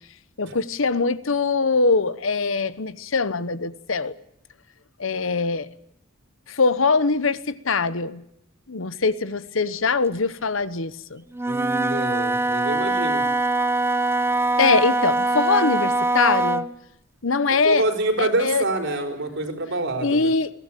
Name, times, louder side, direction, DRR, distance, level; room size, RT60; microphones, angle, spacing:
voice 1, 0.4-4.1 5.0-5.7 6.5-8.2 8.7-11.2 14.6-16.7 17.2-17.9 18.2-18.6 20.0-20.5, left 4 dB, 75° left, 1.0 m, -22 dB
Wind instrument woodwind instrument, 11.3-16.7, right 2 dB, 10° right, 0.7 m, -22 dB
voice 2, 11.5-13.2 17.5-20.3, right 2 dB, 65° right, 4.5 m, -26 dB
22.5 x 16.5 x 9.0 m
head